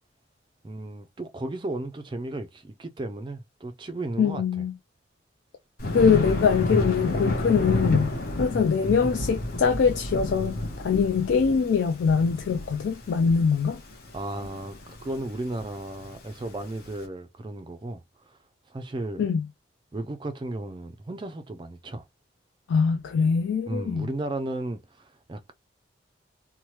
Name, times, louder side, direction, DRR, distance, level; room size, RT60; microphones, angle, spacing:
voice 1, 0.6-4.4 14.1-18.0 18.3-18.4 18.7-19.2 19.9-22.1 23.7-25.5, right 2 dB, 25° right, 0.3 m, -34 dB
voice 2, 4.2-4.7 5.9-10.6 10.8-13.8 19.2-19.5 22.7-24.1, left 6 dB, 80° left, 0.3 m, -23 dB
Thunder, 5.8-16.9, left 1 dB, 50° left, 0.8 m, -30 dB
3.0 x 2.1 x 2.9 m
head